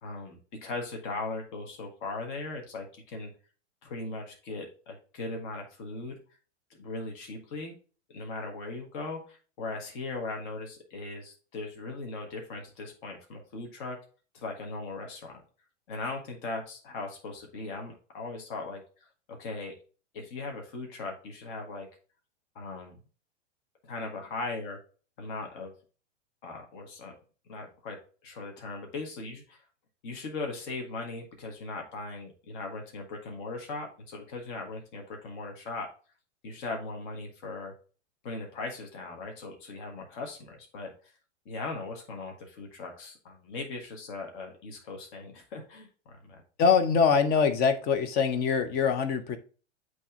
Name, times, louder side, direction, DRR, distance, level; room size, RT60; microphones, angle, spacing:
voice 1, 0.0-3.3 3.8-6.2 6.8-7.7 8.1-14.0 14.3-15.4 15.9-18.8 19.3-19.8 20.1-21.9 22.5-23.0 23.8-24.8 25.2-25.7 26.4-27.2 27.5-28.0 28.2-29.6 30.0-35.9 36.4-37.7 38.2-41.1 41.4-46.4, left 3 dB, 45° left, 2 dB, 1.5 m, -39 dB
voice 2, 46.6-49.4, left 6 dB, 25° left, 9 dB, 0.8 m, -23 dB
8.2 x 3.2 x 3.6 m, 0.37 s
figure-of-eight pair, 100°, 35 cm